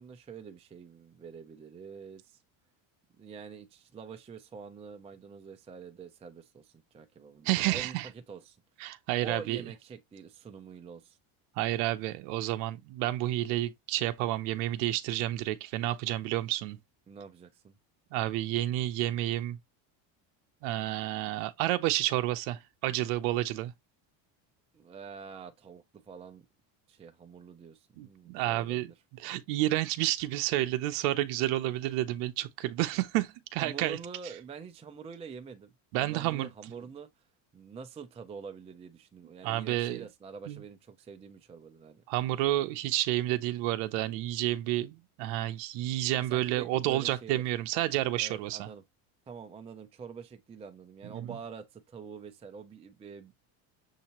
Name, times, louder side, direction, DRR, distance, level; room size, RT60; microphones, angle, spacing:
voice 1, 0.0-2.4 3.2-8.6 9.2-11.2 17.1-17.7 24.7-26.4 26.9-28.9 33.6-35.7 35.9-37.1 37.5-42.0 46.2-47.4 48.2-48.8 49.3-53.3, right 5 dB, 15° right, 0.4 m, -46 dB
voice 2, 7.4-8.1 8.8-9.6 11.6-16.8 18.1-19.6 20.6-23.7 28.0-28.9 29.2-34.0 35.9-36.5 39.4-40.1 40.5-40.6 42.1-48.7 51.1-51.3, right 15 dB, 85° right, 0.7 m, -30 dB
6.5 x 2.7 x 2.9 m
cardioid pair, 135°, 46 cm